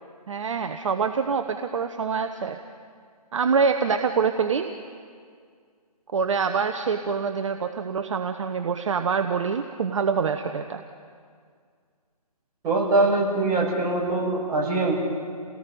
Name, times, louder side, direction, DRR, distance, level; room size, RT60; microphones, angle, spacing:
voice 1, 0.3-2.6 3.3-4.7 6.1-10.8, right 5 dB, 50° right, 7 dB, 0.9 m, -25 dB
voice 2, 12.6-14.9, right 2 dB, 20° right, -5 dB, 5.6 m, -23 dB
29.5 x 18.5 x 5.4 m, 2.1 s
figure-of-eight pair, 150°, 20 cm